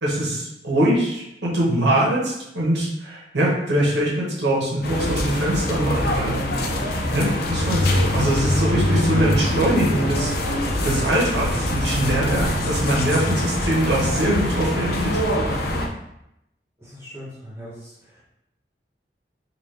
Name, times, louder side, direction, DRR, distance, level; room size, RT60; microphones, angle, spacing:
voice 1, 0.0-6.5 7.1-15.2, right 1 dB, 75° right, -5 dB, 1.1 m, -23 dB
sound 1, 4.8-15.9, left 1 dB, 60° left, 0.5 m, -23 dB
voice 2, 16.8-18.3, equal, 15° right, -9 dB, 1.0 m, -41 dB
4.1 x 2.5 x 3.2 m, 0.84 s
head